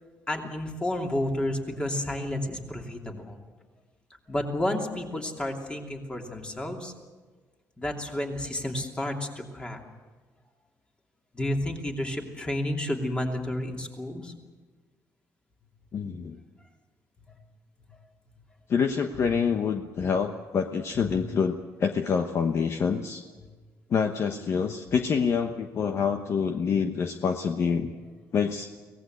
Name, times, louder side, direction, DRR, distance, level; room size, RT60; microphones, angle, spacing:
voice 1, 0.3-3.4 4.3-6.9 7.8-9.8 11.3-14.3 20.0-20.1 20.9-21.1, left 1 dB, 15° left, 2 dB, 2.9 m, -31 dB
voice 2, 15.9-16.4 18.7-23.2 23.9-27.9 28.3-28.7, left 6 dB, 45° left, 6 dB, 1.1 m, -26 dB
24.0 x 18.0 x 8.0 m, 1.4 s
cardioid pair, 150°, 7 cm